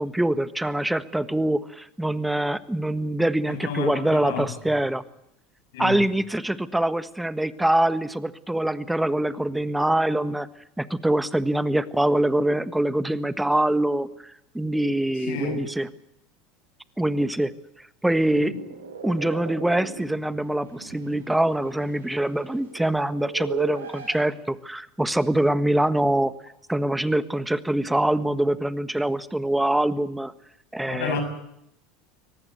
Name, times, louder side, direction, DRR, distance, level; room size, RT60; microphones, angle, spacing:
voice 1, 0.0-5.0 5.8-10.5 10.8-15.9 17.0-17.5 18.0-18.5 19.0-26.3 26.7-30.3 30.7-31.2, right 1 dB, 5° right, 13 dB, 1.5 m, -24 dB
voice 2, 3.5-4.5 5.7-5.9 15.3-15.6 30.9-31.2, left 5 dB, 70° left, 8 dB, 6.6 m, -30 dB
sound 1, 18.2-24.2, right 7 dB, 85° right, 7.4 m, -38 dB
24.5 x 18.5 x 8.0 m, 0.79 s
hypercardioid pair, 80°, 0 cm